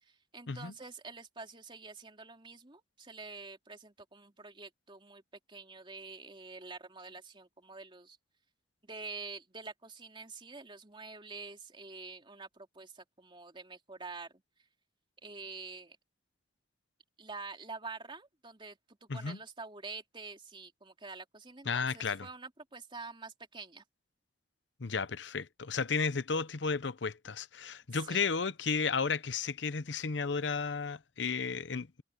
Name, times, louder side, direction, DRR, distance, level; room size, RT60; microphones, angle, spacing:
voice 1, 0.0-5.2 5.5-8.2 8.8-14.3 15.2-16.0 17.2-23.8 27.9-28.2, right 4 dB, 25° right, 3.1 m, -47 dB
voice 2, 21.7-22.3 24.8-32.0, left 5 dB, 75° left, 0.8 m, -33 dB
head